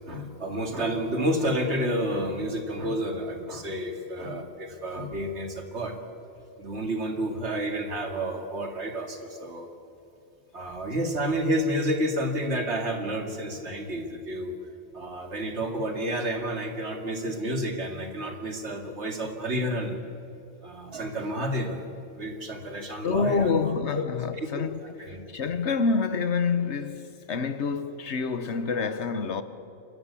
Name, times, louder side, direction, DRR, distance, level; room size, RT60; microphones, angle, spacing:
voice 1, 0.1-5.9 6.6-9.7 10.5-14.6 14.9-20.0 20.6-21.8 22.2-24.0 24.4-25.2, right 1 dB, 60° right, 2.5 m, -30 dB
voice 2, 23.0-29.4, left 5 dB, 65° left, 1.3 m, -27 dB
29.0 x 13.0 x 8.4 m
omnidirectional pair, 1.3 m